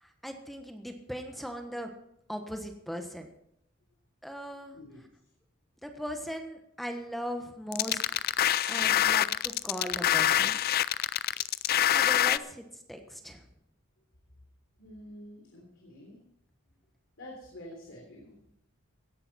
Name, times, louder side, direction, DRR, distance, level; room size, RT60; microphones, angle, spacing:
voice 1, 0.0-1.9 2.3-3.3 4.2-4.8 5.8-8.0 8.7-10.6 11.9-13.4, equal, ahead, 4 dB, 1.3 m, -39 dB
voice 2, 4.7-5.1 14.8-16.2 17.2-18.5, left 1 dB, 65° left, -2 dB, 3.4 m, -48 dB
sound 1, 7.7-12.4, left 11 dB, 45° left, 0.4 m, -25 dB
17.0 x 11.0 x 4.3 m, 0.76 s
head